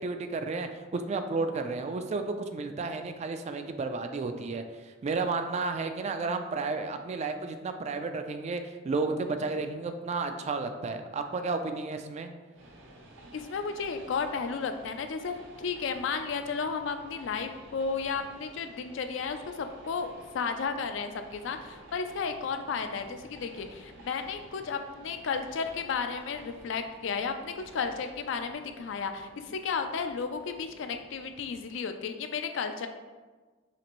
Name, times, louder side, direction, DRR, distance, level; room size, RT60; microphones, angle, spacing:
voice 1, 0.0-12.3, right 3 dB, 35° right, 7 dB, 0.3 m, -32 dB
Train, 12.5-31.7, right 1 dB, 75° right, 0.7 m, -52 dB
voice 2, 13.3-32.9, left 5 dB, 70° left, 7 dB, 0.4 m, -33 dB
5.8 x 2.5 x 3.0 m, 1.4 s
head